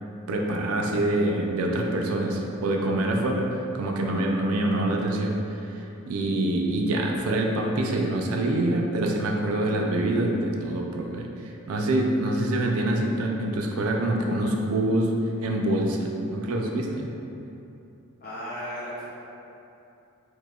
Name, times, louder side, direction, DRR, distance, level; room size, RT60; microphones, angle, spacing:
voice 1, 0.3-3.5 3.7-15.1 15.4-17.1, right 1 dB, 75° right, 1 dB, 0.4 m, -25 dB
voice 2, 18.2-19.1, equal, 40° left, -9 dB, 0.5 m, -35 dB
4.8 x 2.1 x 2.2 m, 2.8 s
head